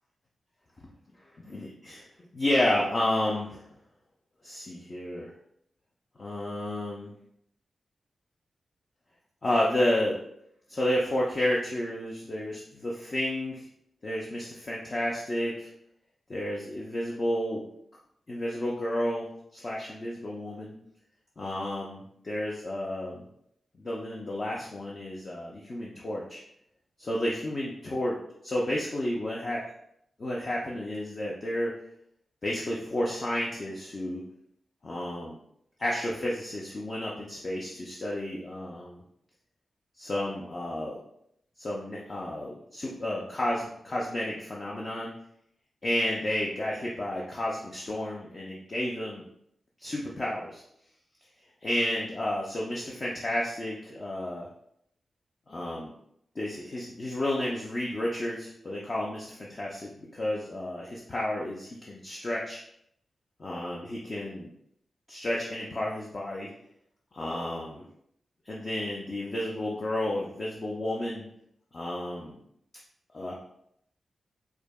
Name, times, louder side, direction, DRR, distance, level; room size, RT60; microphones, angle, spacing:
voice 1, 1.5-3.6 4.4-5.3 6.2-7.1 9.4-10.2 10.7-13.6 14.0-15.7 16.3-17.6 18.3-19.3 19.5-20.7 21.4-22.0 22.3-23.3 23.8-26.4 27.0-28.2 28.4-29.6 30.2-31.7 32.4-34.2 34.8-35.3 35.8-39.0 40.0-41.0 41.6-45.1 45.8-49.2 49.8-50.6 51.6-54.5 55.5-55.9 56.4-62.6 63.4-64.5 65.1-66.5 67.1-67.8 68.5-71.3 71.7-72.4 73.1-73.3, left 1 dB, 35° left, -4 dB, 0.5 m, -31 dB
4.6 x 2.7 x 2.3 m, 0.73 s
wide cardioid pair, 165°, 0 cm